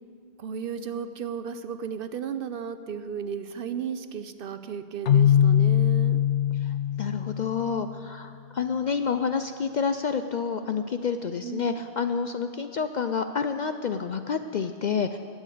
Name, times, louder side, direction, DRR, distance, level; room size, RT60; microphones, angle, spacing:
voice 1, 0.4-6.2 11.4-11.8, right 7 dB, 60° right, 11 dB, 0.7 m, -34 dB
Keyboard (musical), 5.1-8.0, left 9 dB, 85° left, 1.0 m, -22 dB
voice 2, 6.6-15.2, left 6 dB, 55° left, 8 dB, 0.5 m, -29 dB
12.0 x 8.6 x 8.3 m, 2.3 s
omnidirectional pair, 1.1 m